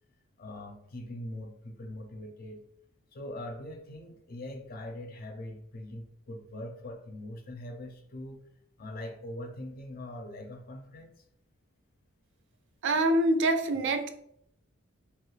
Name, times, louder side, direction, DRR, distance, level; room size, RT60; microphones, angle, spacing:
voice 1, 0.4-2.6 3.1-8.4 8.8-11.2, left 1 dB, 45° left, 5 dB, 0.5 m, -42 dB
voice 2, 12.8-14.1, right 1 dB, 60° right, 6 dB, 0.4 m, -25 dB
2.9 x 2.4 x 3.2 m, 0.70 s
head